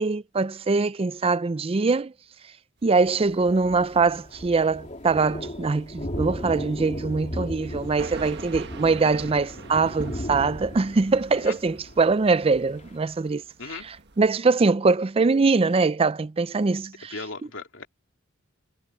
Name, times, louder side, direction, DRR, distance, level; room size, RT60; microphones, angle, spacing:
voice 1, 0.0-2.1 2.8-13.4 13.7-17.1, right 4 dB, 30° right, 0.4 m, -23 dB
sound 1, 2.8-4.5 4.7-5.2 5.4-5.5 6.0-6.1 7.5-14.3, right 3 dB, 55° right, 1.5 m, -43 dB
Thunder, 3.0-13.0, equal, 35° left, 3.7 m, -37 dB
voice 2, 17.1-17.9, left 3 dB, 70° left, 3.5 m, -37 dB
head